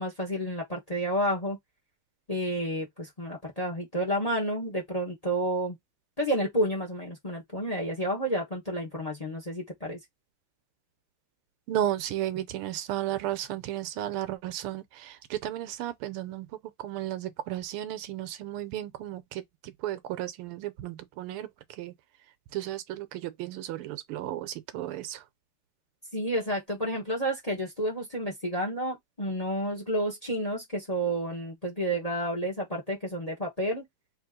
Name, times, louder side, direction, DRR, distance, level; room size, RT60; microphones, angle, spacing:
voice 1, 0.0-1.6 2.3-5.8 6.2-10.0 26.1-33.9, equal, 20° left, 1.1 m, -30 dB
voice 2, 11.7-16.5 16.8-21.5 21.8-21.9 22.5-25.2, right 12 dB, 85° right, 1.6 m, -34 dB
3.4 x 3.3 x 3.7 m
omnidirectional pair, 2.4 m